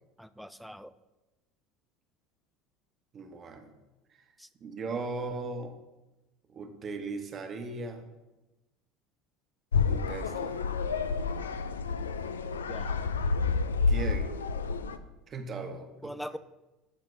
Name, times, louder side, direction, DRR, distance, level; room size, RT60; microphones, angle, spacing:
voice 1, 0.2-0.9 4.4-4.5 12.7-13.2 16.0-16.4, equal, ahead, 14 dB, 0.4 m, -42 dB
voice 2, 3.1-3.7 4.1-4.2 4.6-5.8 6.5-8.1 9.8-10.6 13.9-14.3 15.3-16.2, right 3 dB, 40° right, 5 dB, 1.1 m, -38 dB
sound 1, 9.7-15.0, left 5 dB, 80° left, 0.3 m, -29 dB
12.5 x 4.2 x 3.2 m, 1.0 s
figure-of-eight pair, 70°, 0 cm